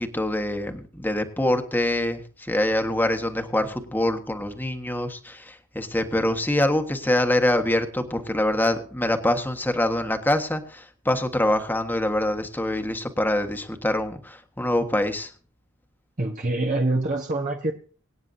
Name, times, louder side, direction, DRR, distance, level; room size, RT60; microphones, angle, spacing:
voice 1, 0.0-15.3, left 1 dB, 10° left, 6 dB, 1.5 m, -25 dB
voice 2, 16.2-17.7, right 2 dB, 40° right, 2 dB, 1.3 m, -25 dB
24.5 x 9.6 x 2.7 m, 0.40 s
head